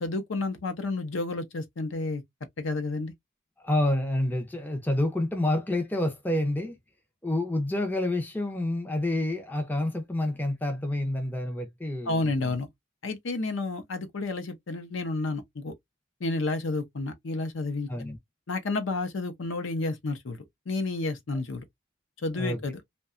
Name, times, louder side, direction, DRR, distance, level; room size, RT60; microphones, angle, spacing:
voice 1, 0.0-2.2 2.6-3.1 12.0-12.7 13.0-15.7 16.2-17.9 18.5-21.6 22.2-22.8, left 3 dB, 65° left, 0.6 m, -31 dB
voice 2, 3.6-6.7 7.2-12.2 17.9-18.2 22.4-22.6, left 1 dB, 10° left, 0.5 m, -28 dB
2.7 x 2.2 x 2.4 m
head